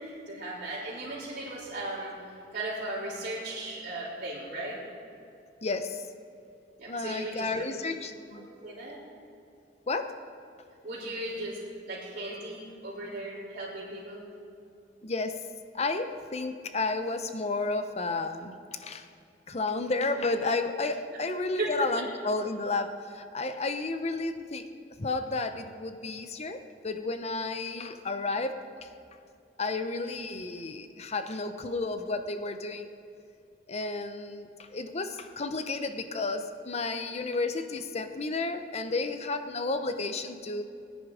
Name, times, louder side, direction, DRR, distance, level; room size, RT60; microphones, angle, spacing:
voice 1, 0.0-2.1 2.5-4.8 6.8-7.7 8.3-9.0 10.8-11.6 11.9-14.2 21.1-21.2 21.6-21.7, right 2 dB, 55° right, -12 dB, 4.3 m, -37 dB
voice 2, 5.6-6.1 6.9-8.5 9.9-10.2 15.0-15.3 15.7-18.5 18.8-19.1 19.5-24.7 25.0-28.9 29.6-32.9 33.7-40.6, left 3 dB, 40° left, 8 dB, 0.8 m, -32 dB
22.5 x 10.0 x 5.0 m, 2.6 s
head